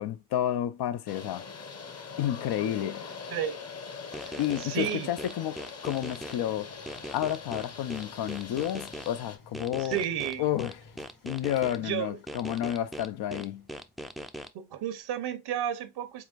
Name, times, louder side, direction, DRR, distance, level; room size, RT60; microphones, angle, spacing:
voice 1, 0.0-1.5 2.2-3.0 4.4-6.7 7.1-10.0 10.4-10.8 11.2-13.7, left 11 dB, 85° left, 0.6 m, -30 dB
sound 1, 1.1-9.4, left 5 dB, 40° left, 0.9 m, -43 dB
sound 2, 4.1-6.4 6.9-9.1 9.5-11.8 12.3-14.5, equal, ahead, 0.3 m, -40 dB
voice 2, 4.3-5.1 9.8-10.4 11.7-12.2 14.5-16.2, right 10 dB, 85° right, 0.9 m, -32 dB
sound 3, 6.2-13.8, left 3 dB, 60° left, 2.3 m, -57 dB
4.8 x 3.5 x 2.4 m
cardioid pair, 95°, 38 cm